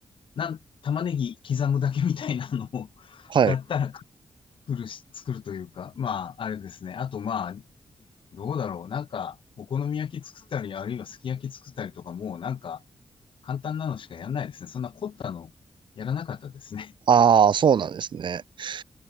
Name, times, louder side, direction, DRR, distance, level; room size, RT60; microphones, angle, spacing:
voice 1, 0.4-4.0 4.7-7.6 8.3-12.8 13.4-15.5 16.0-16.9, left 7 dB, 70° left, 3.7 m, -31 dB
voice 2, 17.1-18.8, right 7 dB, 60° right, 1.3 m, -20 dB
wide cardioid pair, 160°, 9 cm